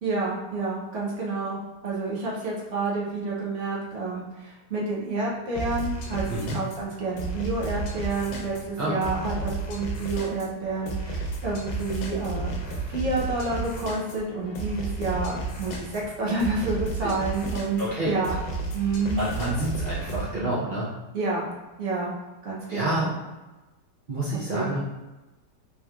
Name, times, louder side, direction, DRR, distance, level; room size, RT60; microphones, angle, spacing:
voice 1, 0.0-1.6 1.8-12.6 12.9-18.4 18.7-19.2 21.1-21.5 21.8-22.2 22.4-23.1 24.5-24.8, right 3 dB, 55° right, -5 dB, 0.9 m, -29 dB
sound 1, 5.6-20.3, right 3 dB, 85° left, 1.3 m, -33 dB
voice 2, 17.8-18.1 19.1-20.9 22.7-23.1 24.1-24.8, right 1 dB, 75° right, -8 dB, 0.4 m, -28 dB
3.6 x 2.8 x 2.3 m, 1.1 s
omnidirectional pair, 1.9 m